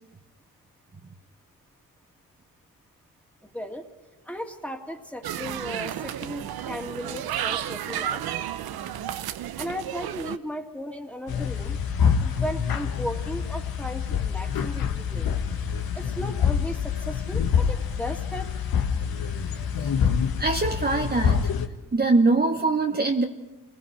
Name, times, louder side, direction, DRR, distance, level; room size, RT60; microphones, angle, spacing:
voice 1, 3.4-3.9 4.3-8.2 9.6-11.8 12.2-15.4 15.9-18.5, equal, 5° left, 3 dB, 2.5 m, -36 dB
sound 1, 5.2-10.4, right 11 dB, 80° right, 0.8 m, -32 dB
sound 2, 11.3-21.7, left 7 dB, 75° left, 1.6 m, -26 dB
voice 2, 20.4-21.5 21.9-23.2, right 3 dB, 25° right, 3 dB, 1.2 m, -22 dB
28.5 x 20.0 x 4.8 m, 1.1 s
cardioid pair, 60°, 36 cm